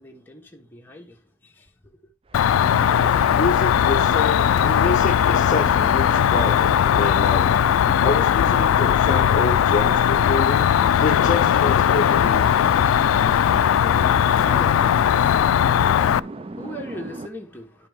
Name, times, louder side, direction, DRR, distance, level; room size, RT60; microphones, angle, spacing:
voice 1, 0.0-2.0 12.7-17.9, equal, 10° left, 1.2 m, -41 dB
Cricket, 2.3-16.2, left 9 dB, 85° left, 0.3 m, -18 dB
sound 1, 2.3-17.3, right 2 dB, 25° right, 0.4 m, -36 dB
voice 2, 3.3-7.5 8.0-10.7 11.0-12.5, left 3 dB, 40° left, 0.6 m, -27 dB
10.5 x 5.0 x 3.5 m
head